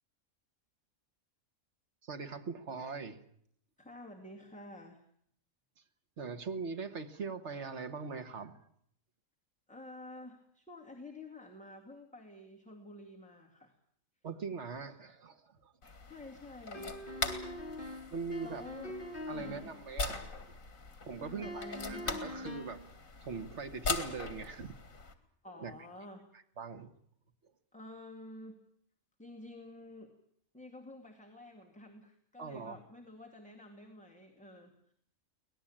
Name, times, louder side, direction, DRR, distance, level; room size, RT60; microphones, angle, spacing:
voice 1, 2.0-3.2 6.2-8.6 14.2-15.7 18.1-18.6 19.3-20.2 21.0-22.8 23.2-24.8 25.6-25.7 26.6-26.9 32.4-32.8, right 4 dB, 55° right, 1.7 m, -41 dB
voice 2, 3.8-5.0 9.7-13.7 16.1-17.0 18.4-19.0 19.3-19.7 21.2-22.5 25.4-26.3 27.7-28.6 29.2-30.1 30.5-34.9, left 1 dB, 5° left, 2.2 m, -50 dB
sound 1, 15.8-25.1, left 3 dB, 75° left, 2.7 m, -41 dB
sound 2, 16.7-19.7 21.4-22.9, left 1 dB, 40° left, 3.1 m, -43 dB
24.5 x 18.5 x 8.8 m
omnidirectional pair, 1.4 m